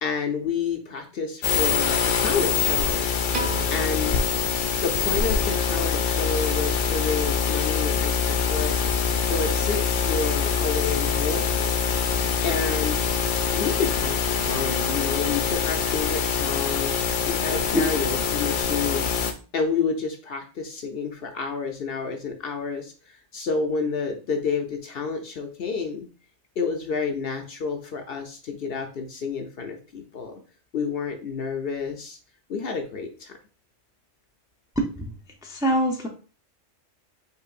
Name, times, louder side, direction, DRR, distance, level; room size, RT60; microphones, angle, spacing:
voice 1, 0.0-3.1 3.7-4.2 4.8-8.7 9.2-11.7 12.4-13.1 13.5-16.9 17.3-19.1 19.5-26.1 26.6-30.3 30.7-32.2 32.5-33.4, left 5 dB, 60° left, 4 dB, 0.7 m, -29 dB
sound 1, 1.4-19.3, left 6 dB, 80° left, 1.0 m, -24 dB
Piano, 3.3-5.6, right 2 dB, 50° right, 0.7 m, -36 dB
voice 2, 34.8-35.1 35.4-36.1, equal, 5° right, 1 dB, 0.4 m, -24 dB
5.4 x 3.8 x 2.4 m, 0.36 s
omnidirectional pair, 1.3 m